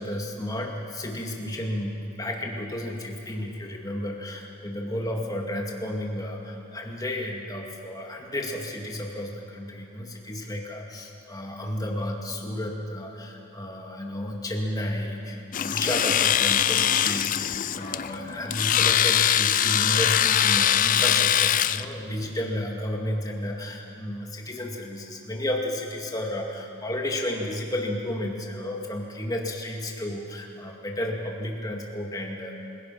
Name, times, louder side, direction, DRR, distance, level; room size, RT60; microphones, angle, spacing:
voice 1, 0.0-32.6, left 1 dB, 15° left, 0 dB, 2.4 m, -32 dB
Domestic sounds home sounds, 15.5-21.8, left 10 dB, 40° left, 0.4 m, -22 dB
28.5 x 17.0 x 6.0 m, 2.9 s
head